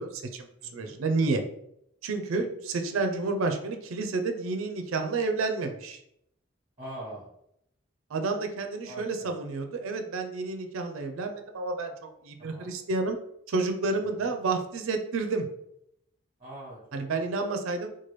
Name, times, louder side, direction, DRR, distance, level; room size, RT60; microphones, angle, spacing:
voice 1, 0.0-0.5 0.7-1.4 2.0-6.0 8.1-11.9 12.2-13.2 13.5-15.5 16.9-17.9, right 3 dB, 80° right, 6 dB, 0.4 m, -30 dB
voice 2, 0.6-1.0 6.8-7.3 8.9-9.3 12.4-12.7 14.0-14.4 16.4-17.1, right 1 dB, 30° right, -6 dB, 0.8 m, -43 dB
3.0 x 2.2 x 3.1 m, 0.75 s
head